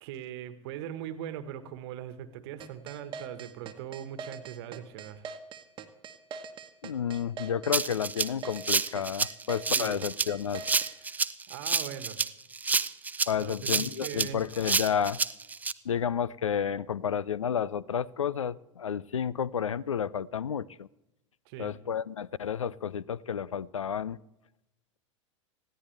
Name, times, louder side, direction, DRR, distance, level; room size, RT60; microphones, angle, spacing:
voice 1, 0.0-5.3 9.6-10.0 11.5-12.2 13.4-14.4 21.4-21.7, right 10 dB, 55° right, 12 dB, 1.3 m, -40 dB
sound 1, 2.6-10.9, right 6 dB, 30° right, 1.2 m, -42 dB
voice 2, 6.8-10.7 13.3-15.2 15.8-20.9 21.6-24.2, left 8 dB, 80° left, 22 dB, 0.5 m, -31 dB
Rattle (instrument), 7.7-15.7, right 4 dB, 10° right, 0.4 m, -29 dB
20.0 x 15.0 x 3.3 m, 0.91 s
figure-of-eight pair, 90°, 16 cm